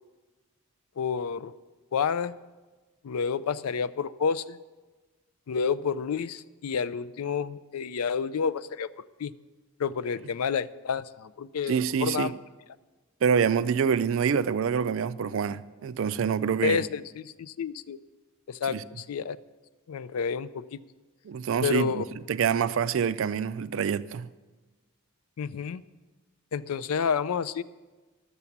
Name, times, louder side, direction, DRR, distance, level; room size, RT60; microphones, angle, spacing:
voice 1, 1.0-1.5 1.9-2.4 3.0-4.6 5.5-8.9 9.2-9.3 9.8-12.3 16.6-18.0 18.5-19.4 19.9-20.8 21.6-22.1 25.4-25.8 26.5-27.6, left 6 dB, 85° left, 0.4 m, -29 dB
voice 2, 11.7-12.3 13.2-16.8 18.7-18.8 21.3-24.3, right 7 dB, 60° right, 0.3 m, -26 dB
12.0 x 6.8 x 7.1 m
head